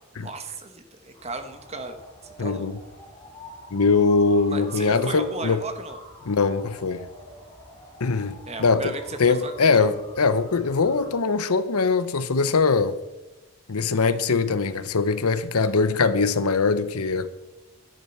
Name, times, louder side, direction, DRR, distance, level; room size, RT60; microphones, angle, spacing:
voice 1, 0.1-2.0 2.4-2.7 4.5-6.0 8.5-9.7, right 2 dB, 30° right, 1.1 m, -35 dB
sound 1, 1.1-11.1, left 1 dB, 15° left, 3.9 m, -46 dB
voice 2, 2.4-2.8 3.7-5.6 6.3-7.1 8.0-8.9 9.2-12.9 13.7-17.3, left 4 dB, 85° left, 0.8 m, -22 dB
12.0 x 10.5 x 4.4 m
head